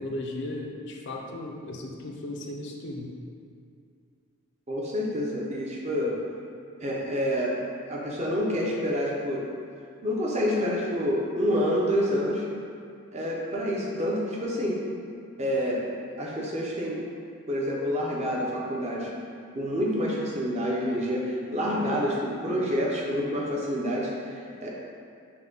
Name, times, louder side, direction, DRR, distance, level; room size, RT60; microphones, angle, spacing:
voice 1, 0.0-3.1, left 1 dB, 50° left, 0 dB, 0.4 m, -36 dB
voice 2, 4.7-6.2 6.8-7.6 7.9-9.4 10.0-12.4 13.1-14.8 15.4-15.8 16.2-17.0 17.5-19.1 19.5-24.7, equal, 30° right, -3 dB, 0.5 m, -28 dB
5.8 x 2.1 x 3.8 m, 2.3 s
head